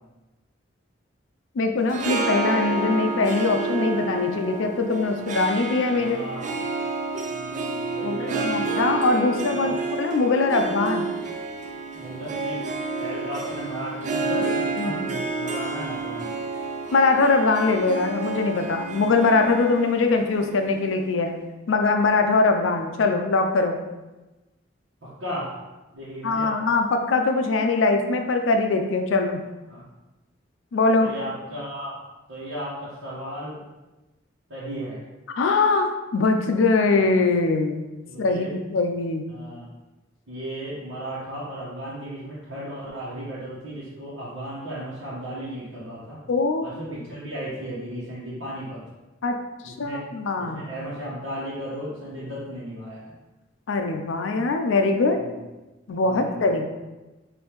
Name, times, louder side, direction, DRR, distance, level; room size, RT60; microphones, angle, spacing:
voice 1, 1.6-6.2 8.0-11.1 14.8-15.0 16.9-21.3 21.7-23.8 26.2-29.4 30.7-31.1 35.4-37.9 38.2-39.3 46.3-46.7 49.2-49.4 49.6-50.7 53.7-55.2 55.9-56.7, left 3 dB, 75° left, 5 dB, 0.4 m, -22 dB
Harp, 1.8-21.1, right 3 dB, 40° right, 0.4 m, -30 dB
voice 2, 5.9-6.6 7.3-8.8 9.5-9.7 11.9-12.6 13.0-16.3 25.0-25.5 25.9-26.5 29.7-29.8 31.0-32.0 32.3-33.6 34.5-35.0 36.9-37.1 38.1-38.5 39.3-39.7 40.3-46.2 46.6-48.8 49.6-50.0 50.4-53.1 55.1-55.4 56.0-56.6, right 1 dB, 70° right, -10 dB, 1.1 m, -35 dB
5.2 x 2.7 x 3.0 m, 1.1 s
head